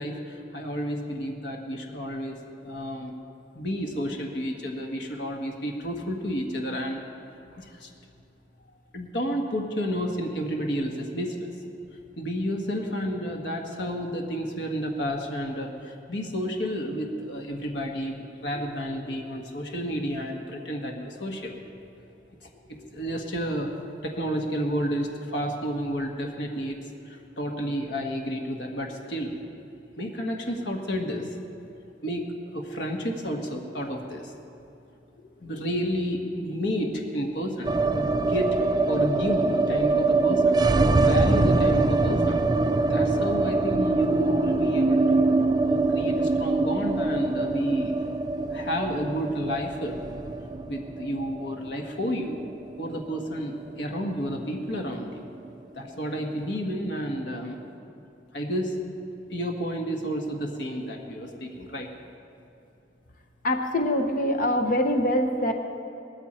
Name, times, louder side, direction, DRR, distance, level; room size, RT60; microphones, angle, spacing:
voice 1, 0.0-2.4 2.6-3.2 3.5-7.1 7.6-7.9 8.9-11.5 12.2-21.6 22.4-23.7 24.0-29.4 30.0-31.3 32.0-32.3 32.5-34.3 35.4-38.6 38.9-40.6 41.0-42.4 42.8-45.3 45.6-48.0 48.5-50.0 50.6-52.4 52.8-55.2 55.7-57.6 58.3-58.8 59.3-61.9, equal, 65° left, 2 dB, 1.5 m, -31 dB
sound 1, 37.6-53.8 54.0-54.1 54.4-55.1, right 3 dB, 20° right, 0.4 m, -24 dB
voice 2, 63.4-65.5, left 1 dB, 50° left, 5 dB, 0.9 m, -24 dB
18.0 x 14.0 x 4.3 m, 2.8 s
head